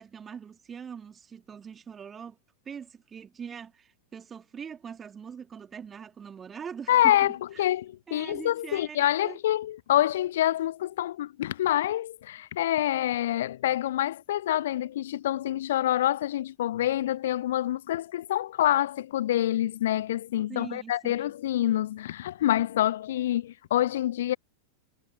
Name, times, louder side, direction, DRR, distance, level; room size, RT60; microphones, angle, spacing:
voice 1, 0.0-2.4 2.7-7.3 8.1-9.4 20.5-21.3, right 7 dB, 20° right, 2.2 m, -42 dB
voice 2, 6.9-24.4, left 13 dB, 60° left, 0.7 m, -26 dB
figure-of-eight pair, 90°, 0 cm